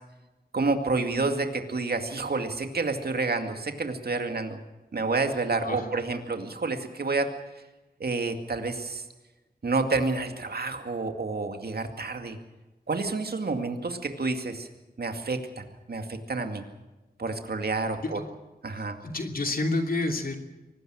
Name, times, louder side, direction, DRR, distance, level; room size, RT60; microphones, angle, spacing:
voice 1, 0.5-4.6 4.9-7.3 8.0-9.1 9.6-12.4 12.9-14.7 15.0-16.7 17.2-18.2 18.6-19.0, right 3 dB, 70° right, 5 dB, 2.3 m, -29 dB
voice 2, 19.0-20.4, left 2 dB, 65° left, 4 dB, 3.0 m, -28 dB
25.0 x 19.5 x 6.4 m, 1.1 s
wide cardioid pair, 80°, 17 cm